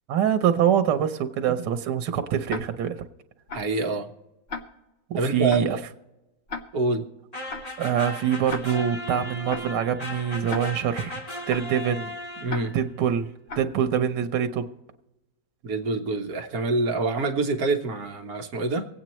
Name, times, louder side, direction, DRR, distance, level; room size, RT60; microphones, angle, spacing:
voice 1, 0.1-3.0 5.1-5.8 7.8-11.2 11.5-12.1 12.7-13.3 13.6-14.7, right 8 dB, 90° right, 8 dB, 1.4 m, -24 dB
Tick-tock, 2.5-2.6 3.5-3.6 4.5-4.6 5.5-5.6 6.5-6.6 7.5-7.6 8.5-8.6 9.5-9.6 10.5-10.6 11.5-11.6 12.5-12.6 13.5-13.6, left 4 dB, 45° left, 1.0 m, -34 dB
voice 2, 3.5-4.1 5.2-5.8 6.7-7.0 12.4-12.7 15.6-18.9, right 3 dB, 60° right, 3 dB, 1.5 m, -26 dB
sound 1, 7.3-12.9, left 1 dB, 20° left, 2.1 m, -37 dB
24.5 x 8.7 x 3.0 m, 1.0 s
omnidirectional pair, 1.8 m